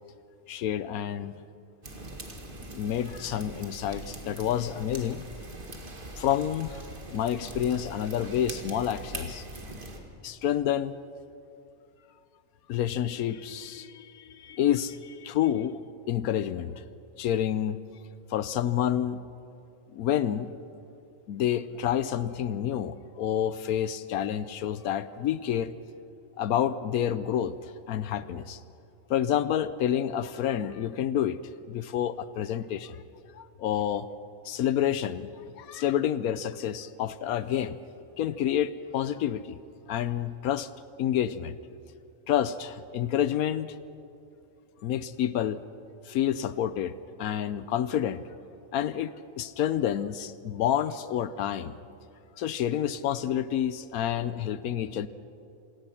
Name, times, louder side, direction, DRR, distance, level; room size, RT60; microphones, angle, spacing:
voice 1, 0.5-1.3 2.7-5.2 6.2-6.8 7.1-9.5 10.2-10.9 12.7-15.8 16.1-16.8 17.2-17.8 18.3-19.2 19.9-20.5 21.3-25.7 26.4-28.6 29.1-31.4 31.7-33.0 33.3-34.1 34.4-35.3 35.6-37.8 38.2-39.6 39.9-40.7 41.0-41.6 42.3-43.8 44.8-45.6 46.1-46.9 47.2-48.2 48.7-51.8 52.4-55.1, left 10 dB, 80° left, 15 dB, 1.1 m, -29 dB
sound 1, 1.8-10.0, right 2 dB, 35° right, 2.1 m, -42 dB
27.0 x 17.5 x 5.8 m, 2.7 s
omnidirectional pair, 1.5 m